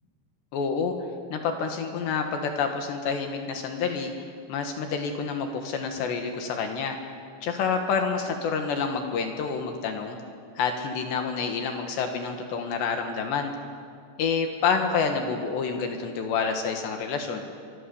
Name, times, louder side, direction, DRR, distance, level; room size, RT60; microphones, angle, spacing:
voice 1, 0.5-0.9 1.3-7.0 7.4-10.2 10.6-13.5 14.2-17.4, left 5 dB, 70° left, 4 dB, 3.7 m, -28 dB
25.0 x 24.5 x 7.1 m, 2.2 s
omnidirectional pair, 5.4 m